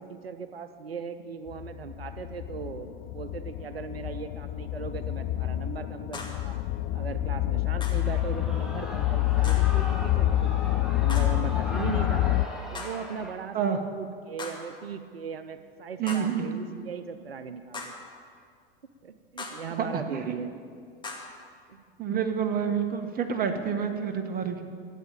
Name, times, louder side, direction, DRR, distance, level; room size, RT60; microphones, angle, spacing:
voice 1, 0.0-6.5 6.9-12.2 12.7-17.9 19.0-20.6 21.7-21.8, right 6 dB, 90° right, 10 dB, 0.7 m, -38 dB
sound 1, 1.5-12.5, left 15 dB, 35° left, 0.5 m, -27 dB
sound 2, 6.1-6.5 7.8-8.1 9.4-9.8 11.1-11.5 12.7-13.1 14.4-14.8 16.1-16.4 17.7-18.1 19.4-19.8 21.0-21.4, left 3 dB, 15° left, 2.2 m, -40 dB
Shout / Cheering, 7.9-13.3, left 1 dB, ahead, 2.5 m, -39 dB
voice 2, 16.0-16.5 19.8-20.3 22.0-24.6, right 7 dB, 30° right, 6 dB, 1.5 m, -28 dB
13.5 x 8.2 x 8.8 m, 2.2 s
hypercardioid pair, 90°, 29 cm